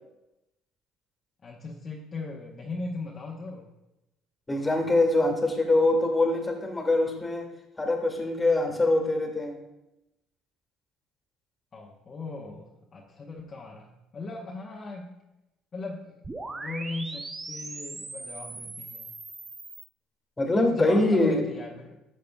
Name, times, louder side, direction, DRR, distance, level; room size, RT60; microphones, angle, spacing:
voice 1, 1.4-3.7 11.7-15.1 15.7-16.1 16.5-19.1 20.5-22.0, left 3 dB, 35° left, -3 dB, 1.0 m, -38 dB
voice 2, 4.5-7.5 7.8-9.6 20.4-21.5, left 2 dB, 15° left, 3 dB, 1.8 m, -24 dB
sound 1, 16.2-19.9, right 2 dB, 20° right, 0.7 m, -39 dB
11.5 x 6.6 x 2.3 m, 0.93 s
supercardioid pair, 85°, 0 cm